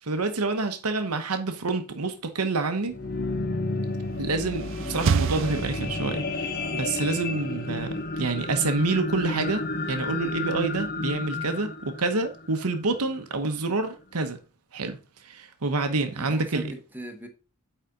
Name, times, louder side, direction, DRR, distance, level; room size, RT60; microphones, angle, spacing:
voice 1, 0.1-2.9 4.2-14.4 14.7-15.0 15.2-16.6, right 3 dB, 90° right, 1.1 m, -27 dB
sound 1, 2.8-13.2 13.8-13.9, left 2 dB, 45° left, 0.8 m, -32 dB
sound 2, 4.1-6.5, right 6 dB, 60° right, 0.4 m, -28 dB
voice 2, 16.2-17.3, right 1 dB, 10° right, 1.1 m, -38 dB
9.1 x 4.2 x 3.8 m
head